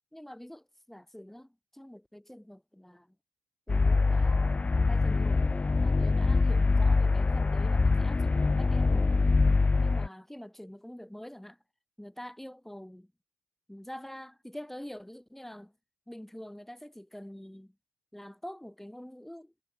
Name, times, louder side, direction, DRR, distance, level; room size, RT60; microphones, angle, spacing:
voice 1, 0.1-3.1 3.7-5.5 5.8-9.1 9.8-11.6 12.0-13.1 13.7-15.7 16.1-17.7 18.1-19.5, equal, 5° left, 6.4 m, -45 dB
sound 1, 3.7-10.1, left 3 dB, 25° left, 0.6 m, -24 dB
hypercardioid pair, 45°, 5 cm